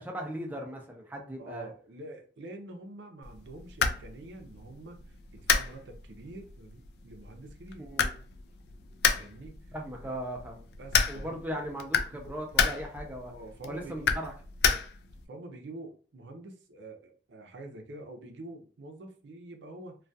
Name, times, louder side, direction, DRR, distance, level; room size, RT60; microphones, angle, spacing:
voice 1, 0.0-1.7 7.8-8.1 9.7-10.7 11.1-13.3 13.7-14.3 14.6-14.8, equal, 10° right, 0.4 m, -38 dB
voice 2, 1.4-7.9 9.1-9.6 10.0-10.1 10.8-11.6 12.1-12.4 13.0-14.1 15.3-20.0, right 2 dB, 90° right, 0.5 m, -46 dB
sound 1, 3.2-15.3, left 6 dB, 65° left, 0.3 m, -32 dB
2.2 x 2.2 x 2.6 m
head